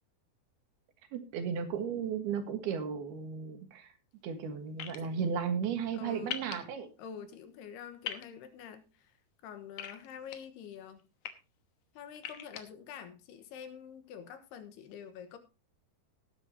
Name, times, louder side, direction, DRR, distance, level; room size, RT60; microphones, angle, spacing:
voice 1, 1.1-3.9 4.2-6.9, right 7 dB, 75° right, 6 dB, 3.4 m, -35 dB
sound 1, 4.8-5.0 6.3-6.5 8.0-8.2 9.8-10.4 11.0-11.3 12.2-12.6, left 10 dB, 65° left, 1.9 m, -39 dB
voice 2, 5.9-6.4 7.0-9.1 9.4-11.1 11.9-15.4, left 8 dB, 85° left, 8 dB, 3.3 m, -47 dB
18.0 x 9.2 x 2.8 m, 0.31 s
omnidirectional pair, 4.6 m